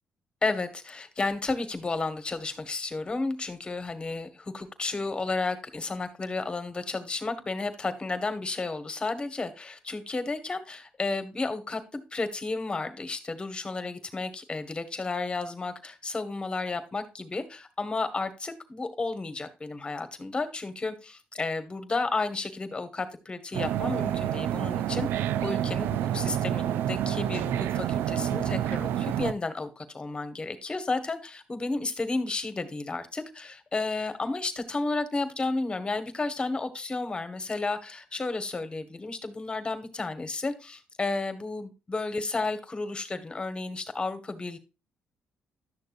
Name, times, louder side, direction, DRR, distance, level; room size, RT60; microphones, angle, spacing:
voice 1, 0.4-44.6, left 3 dB, 25° left, 10 dB, 1.7 m, -32 dB
sound 1, 23.5-29.3, right 11 dB, 85° right, 0.4 m, -28 dB
11.5 x 6.6 x 2.6 m, 0.28 s
cardioid pair, 90°, 4 cm